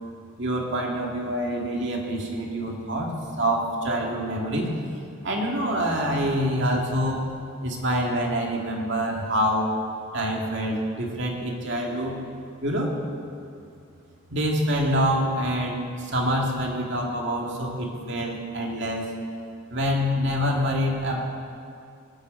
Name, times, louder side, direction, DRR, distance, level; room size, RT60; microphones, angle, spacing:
voice 1, 0.4-4.7 5.2-7.3 7.6-9.7 10.1-12.2 12.6-12.9 14.3-19.1 19.7-21.2, equal, 65° right, 0 dB, 2.3 m, -26 dB
19.5 x 7.0 x 8.2 m, 2.4 s
head